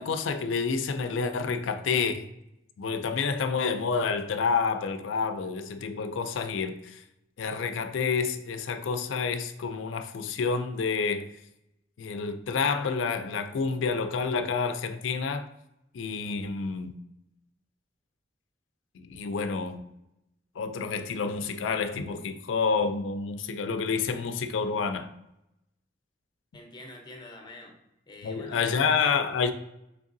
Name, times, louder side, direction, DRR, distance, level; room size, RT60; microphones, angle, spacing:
voice 1, 0.0-2.3 2.8-7.0 7.4-11.3 12.0-15.5 15.9-17.0 18.9-19.8 20.5-25.1 28.2-29.5, left 5 dB, 80° left, 0.4 m, -29 dB
voice 2, 26.5-27.7 28.1-29.1, left 2 dB, 25° left, 0.6 m, -45 dB
3.6 x 3.4 x 2.6 m
head